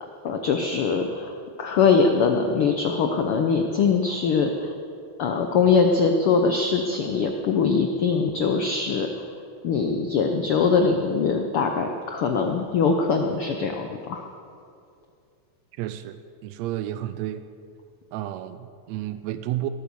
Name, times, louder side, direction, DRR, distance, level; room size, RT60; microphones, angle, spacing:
voice 1, 0.0-1.3 1.6-4.7 5.2-9.1 9.6-14.3, left 5 dB, 90° left, 4 dB, 1.2 m, -22 dB
voice 2, 15.8-17.4 18.1-19.7, right 13 dB, 85° right, 11 dB, 1.5 m, -31 dB
18.5 x 9.2 x 7.0 m, 2.4 s
omnidirectional pair, 3.7 m